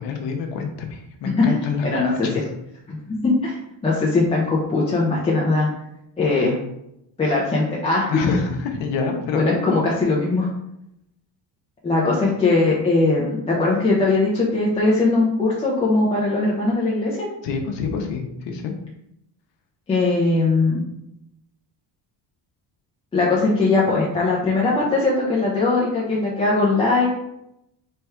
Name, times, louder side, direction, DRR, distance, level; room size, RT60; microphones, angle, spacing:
voice 1, 0.0-1.9 2.2-2.4 8.1-9.8 17.4-18.7, left 5 dB, 80° left, 3 dB, 0.8 m, -26 dB
voice 2, 1.8-2.4 2.9-3.2 3.4-5.7 6.2-6.6 7.2-8.1 9.3-10.5 11.8-17.3 19.9-20.8 23.1-27.1, left 3 dB, 15° left, -5 dB, 0.4 m, -20 dB
3.3 x 2.3 x 4.2 m, 0.80 s
cardioid pair, 180°, 42 cm